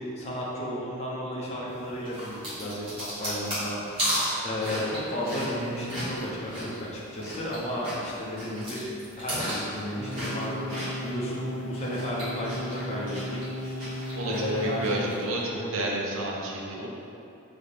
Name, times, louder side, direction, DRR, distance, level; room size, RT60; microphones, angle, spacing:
voice 1, 0.0-3.8 4.4-8.9 9.2-13.4 14.2-15.3 15.5-15.7, equal, 30° left, -5 dB, 0.6 m, -33 dB
sound 1, 2.0-7.6 7.8-11.2 11.6-15.1, equal, 25° right, 1.5 m, -34 dB
sound 2, 10.0-15.0, equal, 10° right, 0.5 m, -35 dB
voice 2, 14.2-16.9, right 1 dB, 65° right, -2 dB, 0.5 m, -31 dB
4.0 x 2.8 x 3.4 m, 2.6 s
head